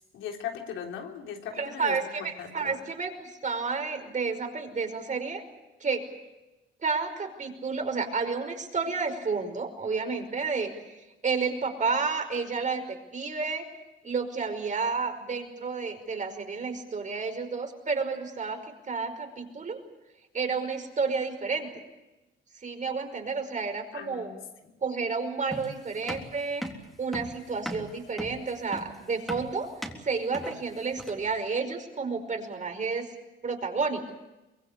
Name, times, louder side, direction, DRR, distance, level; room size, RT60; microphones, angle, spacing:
voice 1, 0.0-2.8 23.9-24.4 24.6-24.8, left 8 dB, 85° left, 2 dB, 3.6 m, -39 dB
voice 2, 1.6-5.4 5.8-6.1 6.8-10.7 11.2-13.6 14.0-19.8 20.3-21.8 22.6-24.3 24.8-26.6 27.0-29.7 30.0-33.1 33.4-34.1, right 4 dB, 40° right, 5 dB, 5.3 m, -31 dB
sound 1, 25.5-31.4, equal, ahead, 3.6 m, -38 dB
24.5 x 22.0 x 8.4 m, 1.0 s
cardioid pair, 90°, 20 cm